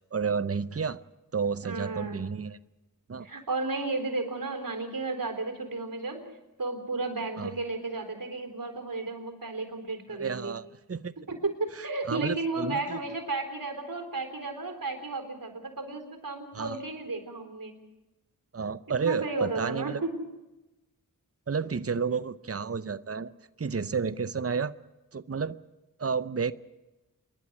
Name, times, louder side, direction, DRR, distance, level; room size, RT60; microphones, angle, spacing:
voice 1, 0.1-1.0 1.3-2.6 3.1-3.3 7.4-7.5 10.2-11.1 12.1-13.0 16.5-16.8 18.5-20.0 21.5-23.3 23.6-24.8 25.1-25.6 26.0-26.5, right 5 dB, 40° right, 15 dB, 0.7 m, -31 dB
voice 2, 1.6-2.2 3.2-6.2 6.6-10.5 11.3-17.7 18.9-20.2, right 3 dB, 65° right, 7 dB, 3.9 m, -33 dB
27.5 x 11.5 x 9.7 m, 1.0 s
wide cardioid pair, 40°, 35 cm